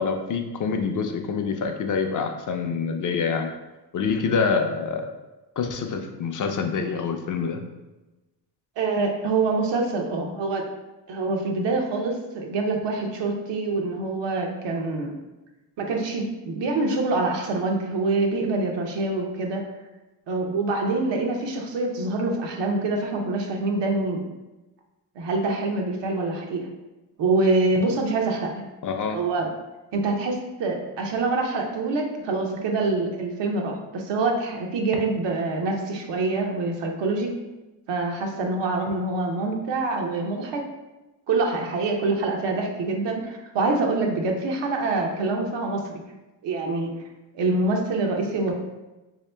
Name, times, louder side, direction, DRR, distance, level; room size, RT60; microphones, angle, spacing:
voice 1, 0.0-3.5 3.9-5.1 5.6-7.6 28.8-29.2, left 5 dB, 50° left, 5 dB, 0.4 m, -26 dB
voice 2, 8.8-10.6 11.1-15.1 15.8-19.6 20.3-24.3 25.2-26.7 27.2-28.6 29.1-29.5 29.9-37.3 37.9-40.6 41.3-46.0 46.4-46.9 47.3-48.5, right 3 dB, 85° right, 2 dB, 0.7 m, -25 dB
3.5 x 2.8 x 3.3 m, 1.1 s
cardioid pair, 115°, 42 cm